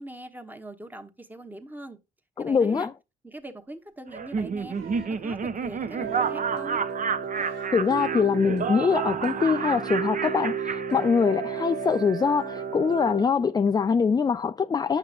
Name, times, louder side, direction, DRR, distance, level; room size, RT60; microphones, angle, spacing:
voice 1, 0.0-2.0 2.4-2.9 3.2-4.8 5.2-6.9, right 1 dB, 10° right, 1.1 m, -42 dB
voice 2, 2.4-2.9 7.7-15.0, left 6 dB, 20° left, 0.3 m, -23 dB
Laughter, 4.1-11.6, right 5 dB, 40° right, 0.8 m, -30 dB
sound 1, 4.7-5.2 6.0-6.6 7.3-7.8 9.1-9.2, right 6 dB, 85° right, 1.3 m, -44 dB
sound 2, 6.0-13.2, right 7 dB, 60° right, 1.5 m, -33 dB
8.7 x 5.7 x 2.4 m
cardioid pair, 90°, 20 cm